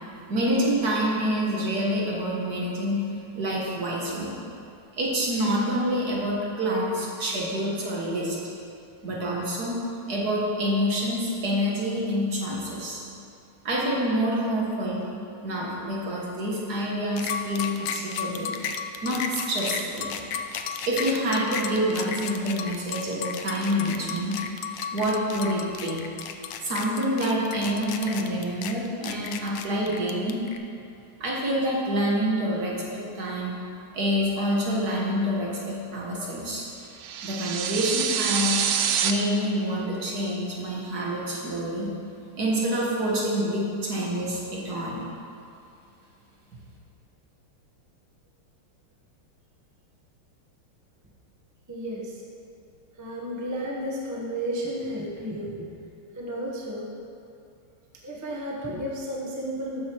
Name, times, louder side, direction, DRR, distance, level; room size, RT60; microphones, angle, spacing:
voice 1, 0.3-3.0 3.3-4.3 4.9-8.4 9.0-9.8 10.1-13.0 13.6-15.0 15.4-18.5 19.0-20.1 20.8-24.4 24.9-26.0 26.6-30.4 31.2-33.6 33.9-36.7 37.2-38.6 39.0-41.9 42.4-45.0, equal, 50° right, -4 dB, 2.0 m, -27 dB
sound 1, 17.2-30.6, left 7 dB, 70° left, 1.1 m, -33 dB
sound 2, 37.0-39.1, right 8 dB, 80° right, 1.5 m, -26 dB
voice 2, 51.7-52.2 53.0-56.9 58.0-59.8, equal, 20° right, -3 dB, 0.4 m, -33 dB
13.0 x 5.3 x 4.6 m, 2.6 s
omnidirectional pair, 2.3 m